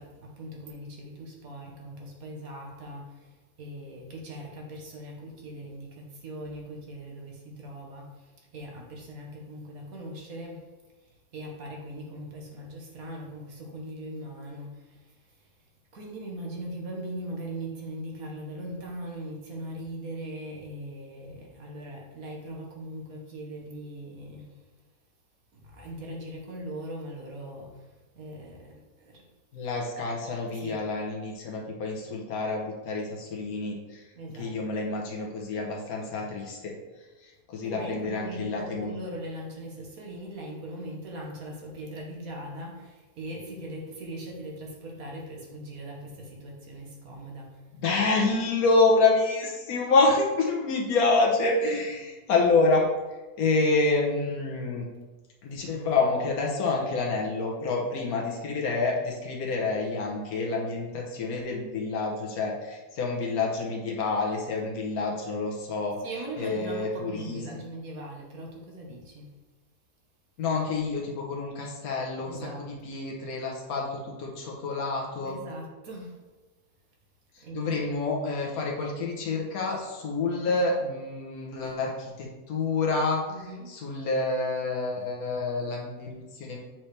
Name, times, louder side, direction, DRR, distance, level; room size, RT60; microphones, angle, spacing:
voice 1, 0.0-10.7 11.0-15.5 15.9-24.6 25.5-29.3 30.6-30.8 34.1-34.5 37.6-47.6 66.0-69.3 72.2-72.6 75.2-76.2 77.4-77.7 83.3-83.7, right 1 dB, 65° right, 0 dB, 1.6 m, -40 dB
voice 2, 29.5-34.1 34.4-36.7 37.2-38.9 47.7-52.9 53.4-54.8 55.4-66.0 66.4-67.4 70.4-75.4 77.3-83.2 83.7-86.6, left 3 dB, 75° left, -1 dB, 1.4 m, -27 dB
7.5 x 4.3 x 3.3 m, 1.2 s
omnidirectional pair, 1.6 m